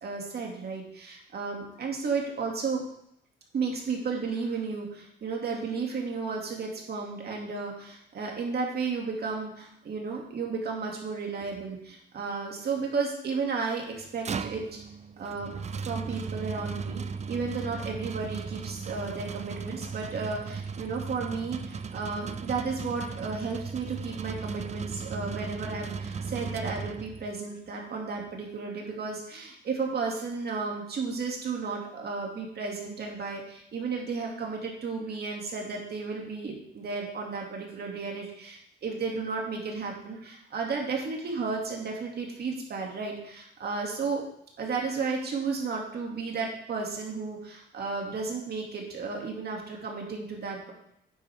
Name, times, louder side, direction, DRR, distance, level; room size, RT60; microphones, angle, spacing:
voice 1, 0.0-2.8 3.5-14.8 15.2-15.5 15.8-44.2 44.6-50.7, right 4 dB, 55° right, 0 dB, 2.5 m, -33 dB
sound 1, 13.9-27.4, right 5 dB, 35° right, 0.5 m, -37 dB
9.2 x 7.9 x 3.6 m, 0.74 s
cardioid pair, 90°, 20 cm